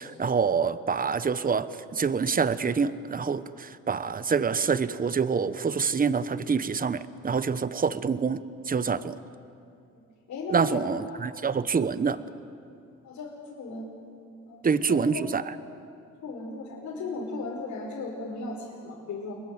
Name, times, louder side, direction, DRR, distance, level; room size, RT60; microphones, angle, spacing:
voice 1, 0.0-9.2 10.5-12.2 14.6-15.5, right 5 dB, 30° right, 14 dB, 1.0 m, -26 dB
voice 2, 10.3-11.2 13.0-13.9 14.5-15.2 16.2-19.3, left 3 dB, 70° left, -5 dB, 5.4 m, -36 dB
28.0 x 21.5 x 8.1 m, 2.5 s
cardioid pair, 90°, 30 cm